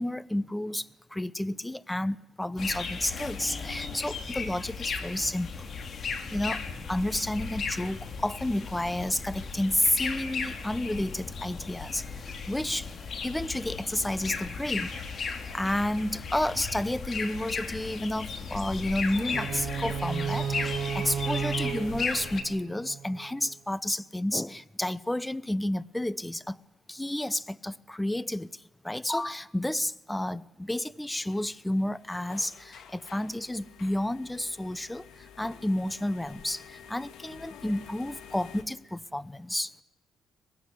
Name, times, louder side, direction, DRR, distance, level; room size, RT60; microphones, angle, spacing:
voice 1, 0.0-5.7 6.3-6.6 6.9-12.9 13.2-14.9 15.5-26.6 26.9-39.7, left 1 dB, 10° left, 0.8 m, -31 dB
sound 1, 2.6-22.4, left 5 dB, 50° left, 2.8 m, -36 dB
sound 2, 19.3-23.3, right 8 dB, 50° right, 1.5 m, -33 dB
sound 3, 31.1-38.6, left 8 dB, 80° left, 2.4 m, -50 dB
23.5 x 21.0 x 8.1 m
cardioid pair, 90°, 0 cm